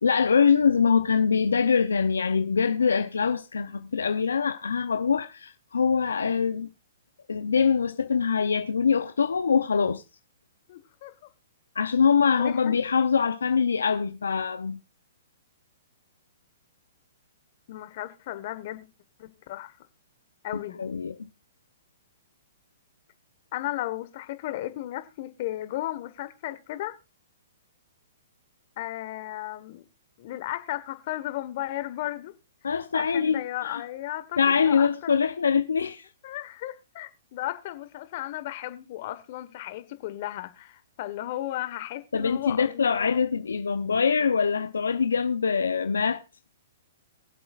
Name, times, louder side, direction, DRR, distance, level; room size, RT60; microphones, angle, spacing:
voice 1, 0.0-6.7 7.3-10.0 11.8-14.8 20.8-21.3 32.6-33.8 34.4-36.1 42.1-46.2, left 6 dB, 80° left, 0.7 m, -24 dB
voice 2, 10.7-11.1 12.4-12.8 17.7-18.9 19.2-19.7 20.4-20.8 23.5-27.0 28.8-29.8 30.2-32.3 32.9-35.3 36.2-43.2, left 15 dB, 50° left, 1.3 m, -35 dB
23.0 x 7.7 x 2.5 m
hypercardioid pair, 125°, 0 cm